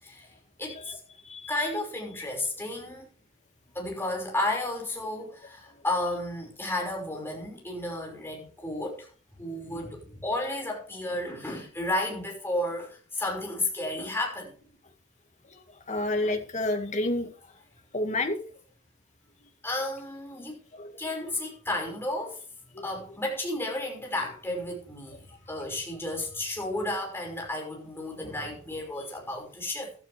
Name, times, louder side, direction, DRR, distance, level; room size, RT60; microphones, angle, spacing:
voice 1, 0.6-1.0 1.5-3.1 3.7-9.1 9.4-14.5 19.6-20.6 21.0-22.4 22.8-29.9, left 1 dB, 10° left, 5.5 m, -32 dB
voice 2, 15.9-17.3 17.9-18.4 20.7-20.9 22.7-22.9, left 1 dB, 35° left, 2.1 m, -29 dB
15.5 x 12.5 x 3.4 m
head